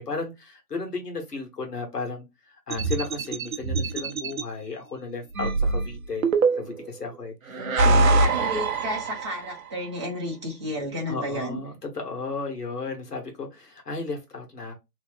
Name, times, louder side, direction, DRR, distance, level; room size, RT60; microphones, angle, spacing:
voice 1, 0.0-6.3 6.6-8.1 11.1-14.7, left 3 dB, 70° left, 1.4 m, -34 dB
sound 1, 2.7-4.4 5.4-6.9 7.5-9.7, right 3 dB, 60° right, 0.6 m, -24 dB
voice 2, 7.5-11.6, equal, 20° right, 0.8 m, -32 dB
3.0 x 2.1 x 3.4 m
figure-of-eight pair, 145°, 49 cm